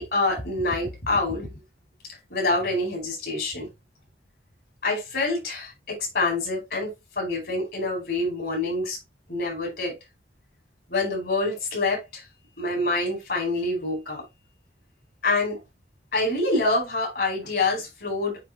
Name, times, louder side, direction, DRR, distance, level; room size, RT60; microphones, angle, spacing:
voice 1, 0.0-1.5 2.3-3.7 4.8-6.9 7.2-9.0 9.3-10.0 10.9-12.2 12.6-14.2 15.2-15.6 16.1-18.4, left 2 dB, 60° left, 4.6 m, -26 dB
9.2 x 3.5 x 3.0 m
head